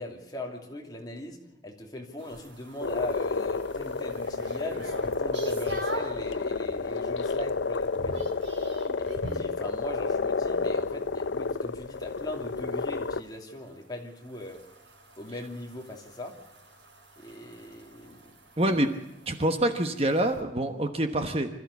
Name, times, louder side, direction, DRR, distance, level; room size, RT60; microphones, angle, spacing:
voice 1, 0.0-8.3 9.0-14.7 15.2-16.4 17.2-18.3, left 1 dB, 20° left, 1 dB, 2.9 m, -39 dB
sound 1, 2.2-6.2 6.7-7.2 7.4-9.5 12.0-20.4, right 1 dB, 75° right, 4.7 m, -43 dB
sound 2, 2.8-13.2, left 4 dB, 70° left, 0.7 m, -30 dB
voice 2, 18.6-18.9 19.3-21.6, right 1 dB, 30° right, 7 dB, 1.2 m, -26 dB
25.5 x 14.0 x 8.3 m, 0.92 s
head